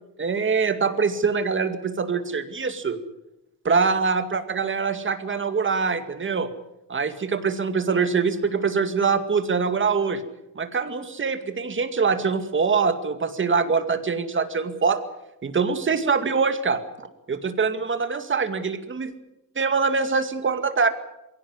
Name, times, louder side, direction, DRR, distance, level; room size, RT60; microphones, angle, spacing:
voice 1, 0.2-3.0 3.6-6.5 6.9-10.2 10.6-15.0 15.4-19.1 19.6-20.9, right 5 dB, 35° right, 9 dB, 2.3 m, -24 dB
22.5 x 17.0 x 9.7 m, 0.91 s
cardioid pair, 110°, 33 cm